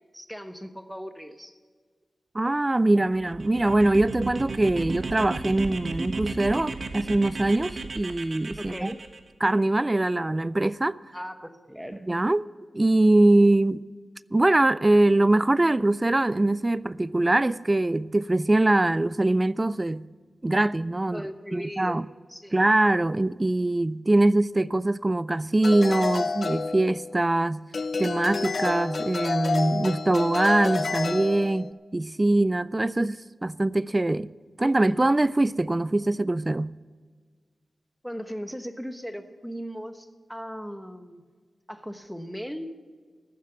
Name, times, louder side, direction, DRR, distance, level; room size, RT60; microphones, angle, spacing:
voice 1, 0.1-1.5 8.6-9.0 11.1-12.0 21.1-22.0 22.3-22.6 38.0-41.2 41.7-42.7, equal, ahead, 1.1 m, -37 dB
voice 2, 2.3-8.9 9.4-11.0 12.0-12.5 12.7-13.8 14.3-20.0 20.4-21.2 21.5-22.0 22.5-27.6 28.0-34.3 34.6-36.7, right 2 dB, 25° right, 0.3 m, -23 dB
sound 1, 3.1-9.2, right 3 dB, 60° right, 1.2 m, -34 dB
sound 2, 25.6-27.3 27.7-31.7, left 4 dB, 60° left, 0.6 m, -29 dB
14.5 x 7.4 x 8.1 m
cardioid pair, 55°, 0 cm